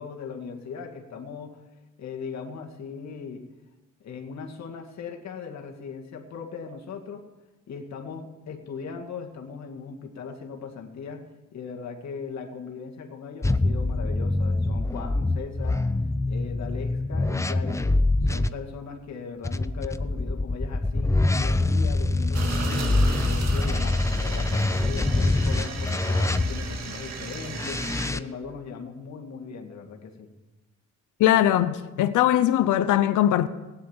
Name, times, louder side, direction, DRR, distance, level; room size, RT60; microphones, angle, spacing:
voice 1, 0.0-1.6 2.0-3.4 4.0-7.3 7.7-15.9 16.3-17.8 18.2-30.3, left 5 dB, 65° left, 2.2 m, -38 dB
sound 1, 13.4-18.5 19.4-26.8 27.5-28.2, left 2 dB, 10° left, 0.6 m, -25 dB
sound 2, 22.3-28.1, right 3 dB, 60° right, 2.2 m, -35 dB
voice 2, 31.2-33.5, left 12 dB, 85° left, 0.8 m, -20 dB
16.0 x 10.0 x 7.3 m
cardioid pair, 90°, 30 cm